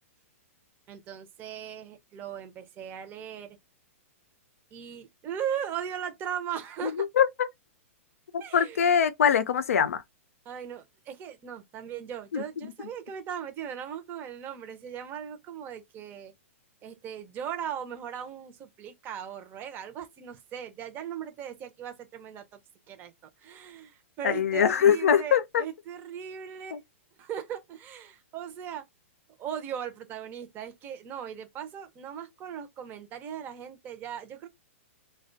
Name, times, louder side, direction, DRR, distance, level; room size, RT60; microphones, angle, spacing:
voice 1, 0.9-3.6 4.7-7.1 8.4-8.9 10.5-16.3 16.8-22.6 22.9-23.1 23.4-26.8 27.2-28.8 29.4-34.5, right 9 dB, 25° right, 0.6 m, -38 dB
voice 2, 6.8-7.5 8.3-10.0 12.3-12.4 24.2-25.6 26.7-26.8, left 8 dB, 85° left, 0.4 m, -23 dB
2.4 x 2.2 x 2.6 m
hypercardioid pair, 135°, 8 cm